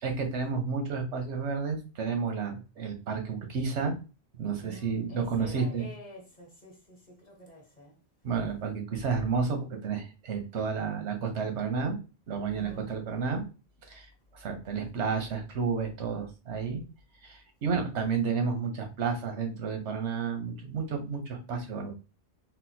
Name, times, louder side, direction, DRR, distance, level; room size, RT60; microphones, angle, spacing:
voice 1, 0.0-3.9 4.3-5.9 8.2-12.0 12.3-13.4 13.8-16.8 17.2-21.9, right 5 dB, 85° right, 1.1 m, -31 dB
voice 2, 4.6-8.0 12.5-12.9, equal, 40° left, 1.1 m, -48 dB
4.0 x 2.2 x 2.7 m
omnidirectional pair, 1.1 m